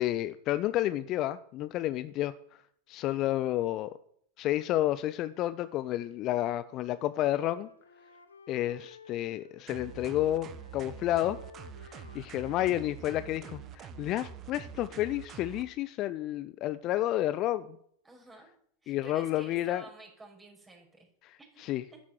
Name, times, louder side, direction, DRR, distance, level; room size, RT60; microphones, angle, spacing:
voice 1, 0.0-2.3 2.9-4.0 4.4-7.7 8.5-11.4 11.9-17.8 18.9-19.8 21.2-21.8, left 14 dB, 35° left, 0.6 m, -31 dB
Wind instrument woodwind instrument, 6.4-10.0 10.3-14.3, left 4 dB, 75° left, 2.1 m, -56 dB
sound 1, 9.7-15.6, right 7 dB, 30° right, 1.4 m, -46 dB
voice 2, 18.0-18.5 18.8-21.1 21.4-22.0, right 2 dB, 10° right, 6.0 m, -51 dB
13.0 x 10.5 x 9.4 m
figure-of-eight pair, 90°, 0 cm